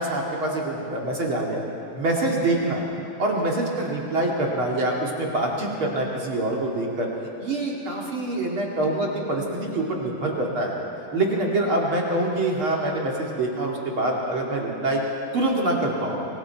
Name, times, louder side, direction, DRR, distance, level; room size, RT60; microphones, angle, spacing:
voice 1, 0.0-1.6 1.9-2.8 3.2-7.1 7.4-10.8 11.1-15.0 15.3-16.2, right 2 dB, 40° right, -2 dB, 2.4 m, -25 dB
28.0 x 23.5 x 4.6 m, 2.7 s
omnidirectional pair, 4.7 m